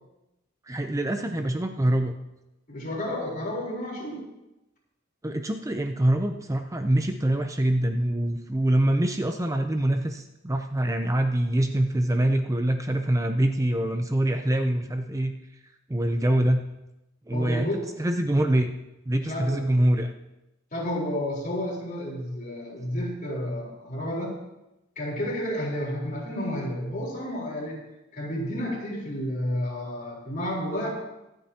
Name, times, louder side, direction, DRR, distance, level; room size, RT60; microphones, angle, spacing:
voice 1, 0.7-2.1 5.2-15.3 15.9-16.6 17.3-17.7 18.0-18.7 19.1-20.1, right 1 dB, 15° right, 5 dB, 0.6 m, -24 dB
voice 2, 2.7-4.2 17.3-17.9 19.1-19.6 20.7-24.4 25.0-27.8 28.1-30.9, left 1 dB, 45° left, -3 dB, 4.0 m, -31 dB
24.0 x 9.0 x 2.9 m, 0.94 s
head